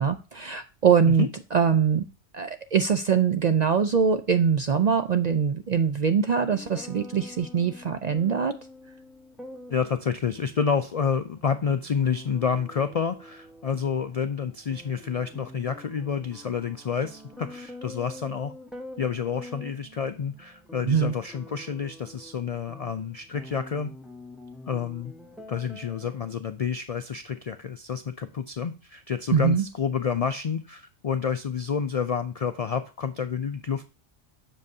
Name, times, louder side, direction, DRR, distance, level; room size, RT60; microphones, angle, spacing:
voice 1, 0.0-2.1 2.3-8.5 20.9-21.1 29.3-29.7, right 7 dB, 60° right, 9 dB, 0.4 m, -23 dB
sound 1, 6.5-26.3, left 1 dB, ahead, 1.0 m, -46 dB
voice 2, 9.7-18.5 19.0-23.9 24.7-25.1 25.5-33.8, left 6 dB, 65° left, 10 dB, 0.3 m, -29 dB
7.5 x 6.4 x 2.7 m, 0.33 s
omnidirectional pair, 1.2 m